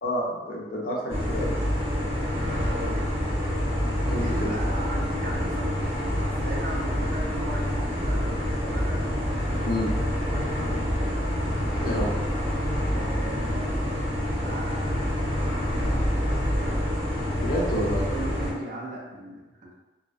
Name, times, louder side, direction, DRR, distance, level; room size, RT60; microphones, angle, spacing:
voice 1, 0.0-1.5 4.1-4.5 9.6-9.9 11.8-12.2 17.3-18.1, equal, 55° left, -2 dB, 0.5 m, -29 dB
sound 1, 1.1-18.5, equal, 15° right, 1.1 m, -27 dB
voice 2, 2.3-3.2 4.0-9.1 10.3-10.9 12.9-13.8 14.4-15.3 15.6-17.0 18.1-19.7, right 1 dB, 45° right, -1 dB, 0.4 m, -38 dB
2.5 x 2.0 x 2.4 m, 1.1 s
head